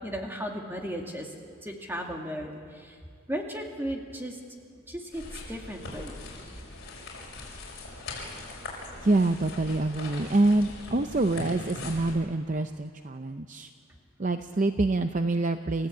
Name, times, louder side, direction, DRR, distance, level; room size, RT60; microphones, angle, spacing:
voice 1, 0.0-1.3 1.6-3.0 3.3-4.4 4.9-6.2, equal, 10° right, 1 dB, 2.1 m, -35 dB
sound 1, 5.1-12.1, left 2 dB, 50° left, 6.2 m, -41 dB
voice 2, 9.0-13.7 14.2-15.9, right 2 dB, 35° right, 8 dB, 0.6 m, -26 dB
29.0 x 14.5 x 8.5 m, 2.2 s
head